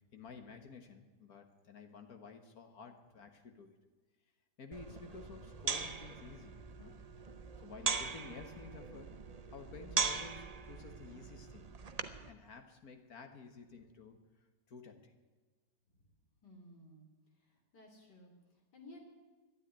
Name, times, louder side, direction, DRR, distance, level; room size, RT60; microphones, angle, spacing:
voice 1, 0.1-3.8 4.6-7.0 7.6-9.1 9.5-11.8 12.3-14.2 14.7-15.1, left 4 dB, 65° left, 6 dB, 1.8 m, -52 dB
sound 1, 4.7-12.3, right 5 dB, 40° right, 0.5 m, -40 dB
voice 2, 16.4-17.1 17.3-19.0, left 1 dB, 90° left, 2 dB, 3.6 m, -57 dB
12.5 x 9.9 x 10.0 m, 1.4 s
omnidirectional pair, 1.8 m